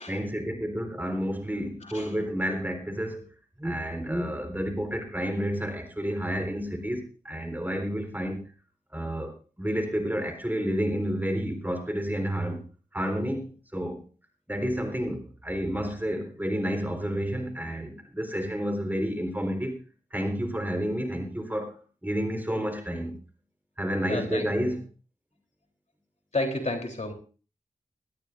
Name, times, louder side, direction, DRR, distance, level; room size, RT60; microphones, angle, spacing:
voice 1, 0.0-3.2 3.6-8.4 8.9-9.3 9.6-12.6 12.9-14.0 14.5-19.8 20.1-21.7 22.0-23.1 23.8-24.8, equal, 15° right, 5 dB, 4.2 m, -30 dB
voice 2, 1.8-2.2 24.1-24.5 26.3-27.1, left 2 dB, 55° left, 3 dB, 3.6 m, -31 dB
19.5 x 13.5 x 2.6 m, 0.36 s
cardioid pair, 40°, 14 cm